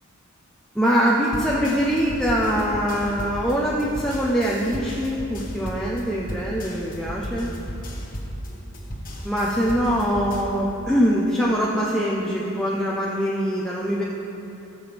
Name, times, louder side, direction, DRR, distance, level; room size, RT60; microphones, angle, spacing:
voice 1, 0.7-7.5 9.2-14.0, equal, 5° left, -5 dB, 0.8 m, -23 dB
sound 1, 1.3-10.4, equal, 40° left, 1.5 m, -34 dB
19.0 x 7.0 x 3.5 m, 2.9 s
head